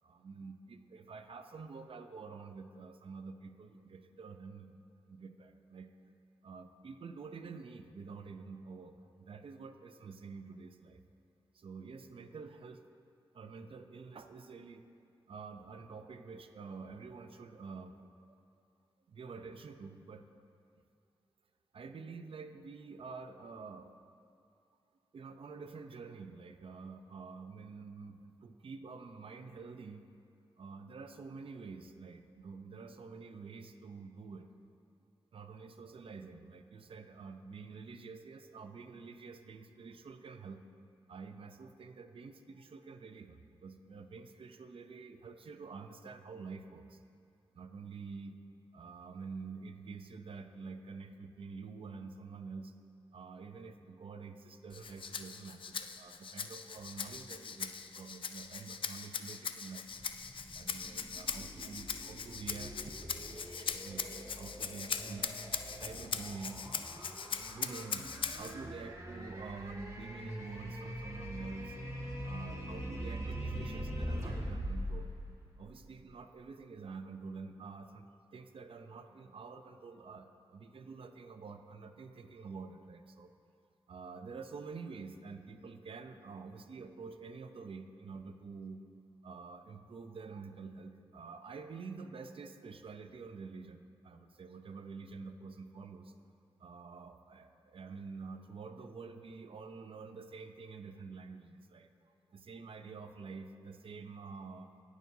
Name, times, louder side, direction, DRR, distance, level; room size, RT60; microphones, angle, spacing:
voice 1, 0.0-5.9 6.4-11.0 11.5-12.8 13.3-14.8 15.3-17.9 18.2-18.4 19.1-20.3 21.7-23.9 25.1-30.1 30.6-34.5 35.3-40.6 41.1-47.0 47.5-48.4 48.7-52.7 53.1-59.9 60.5-62.7 63.3-65.3 65.7-66.7 67.0-67.1 67.5-68.1 68.4-71.8 72.2-75.1 75.6-83.3 83.9-88.8 89.2-96.2 96.6-101.9 102.3-104.7, right 4 dB, 65° right, 7 dB, 0.7 m, -48 dB
Rattle (instrument), 54.7-68.5, left 6 dB, 60° left, 0.4 m, -40 dB
sound 1, 59.9-76.1, equal, 30° right, 2.0 m, -43 dB
18.0 x 6.3 x 2.8 m, 2.5 s
cardioid pair, 50°, 10 cm